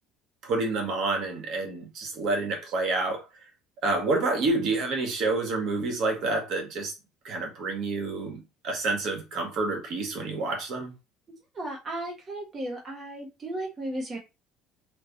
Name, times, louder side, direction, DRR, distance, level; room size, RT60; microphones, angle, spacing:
voice 1, 0.4-3.2 3.8-6.9 7.2-10.9, right 3 dB, 60° right, 1.7 m, -28 dB
voice 2, 11.5-14.2, right 1 dB, 30° right, 1.3 m, -35 dB
4.3 x 2.8 x 4.1 m
cardioid pair, 115°, 0 cm